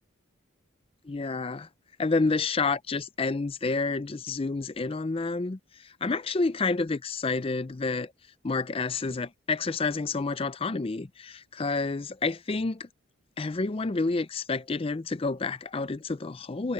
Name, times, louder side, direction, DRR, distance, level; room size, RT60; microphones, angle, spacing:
voice 1, 1.0-1.7 2.0-8.1 8.4-12.9 13.4-16.7, left 3 dB, 25° left, 0.4 m, -29 dB
head